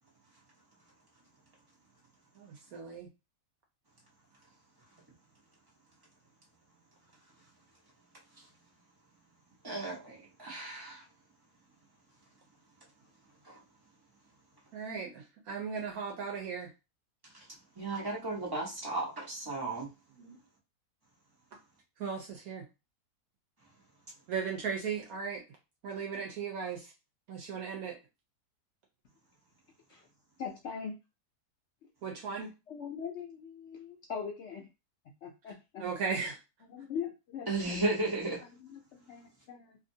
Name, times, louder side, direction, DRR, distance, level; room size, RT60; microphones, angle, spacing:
voice 1, 2.4-3.1 14.7-16.7 20.2-20.4 22.0-22.6 24.3-25.4 25.8-26.9 27.3-27.9 32.0-32.5 35.8-36.4, right 6 dB, 70° right, 1 dB, 1.1 m, -37 dB
voice 2, 9.6-11.0 13.4-13.6 17.8-19.9 37.5-38.4, right 2 dB, 20° right, -4 dB, 0.9 m, -34 dB
voice 3, 30.4-31.0 32.7-34.7 35.2-35.8 36.7-37.8 38.6-39.8, left 7 dB, 70° left, 1 dB, 0.6 m, -41 dB
2.7 x 2.5 x 2.6 m, 0.26 s
omnidirectional pair, 1.7 m